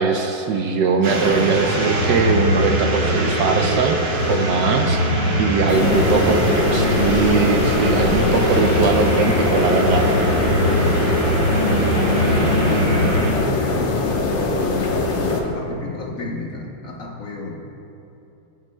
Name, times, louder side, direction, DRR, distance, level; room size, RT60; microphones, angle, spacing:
voice 1, 0.0-6.4 6.7-10.1 12.3-12.5, right 5 dB, 70° right, 4 dB, 1.2 m, -21 dB
sound 1, 1.0-13.3, equal, 50° right, 1.8 m, -21 dB
voice 2, 5.1-6.0 10.6-11.1 11.7-17.7, left 2 dB, 55° left, -1 dB, 1.1 m, -32 dB
sound 2, 5.7-15.4, left 3 dB, 70° left, 1.8 m, -22 dB
20.0 x 9.2 x 2.2 m, 2.8 s
omnidirectional pair, 2.2 m